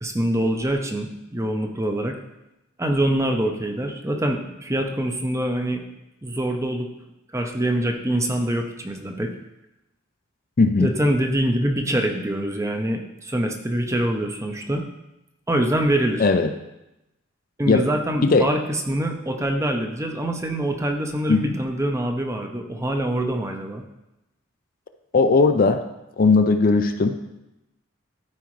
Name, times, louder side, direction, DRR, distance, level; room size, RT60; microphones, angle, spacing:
voice 1, 0.0-2.2 2.8-5.8 6.2-6.9 7.3-9.3 10.8-14.8 15.5-16.3 17.6-23.8, right 1 dB, 15° right, 3 dB, 0.7 m, -24 dB
voice 2, 10.6-10.9 16.2-16.5 17.7-17.8 18.2-18.5 21.3-21.6 25.1-25.8 26.2-27.4, left 3 dB, 45° left, 7 dB, 0.5 m, -18 dB
13.0 x 4.8 x 3.2 m, 0.92 s
head